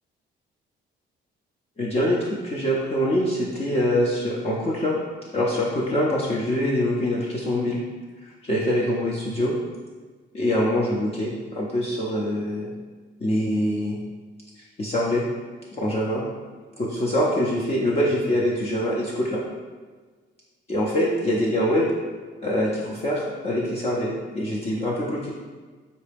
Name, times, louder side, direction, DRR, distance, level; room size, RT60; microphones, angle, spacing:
voice 1, 1.8-5.0 5.3-7.8 8.5-9.6 10.3-12.7 13.2-14.0 14.8-15.2 15.8-16.2 16.8-19.4 20.7-21.9 22.4-25.3, equal, 30° left, -5 dB, 0.6 m, -24 dB
4.0 x 2.2 x 3.3 m, 1.4 s
cardioid pair, 90°, 20 cm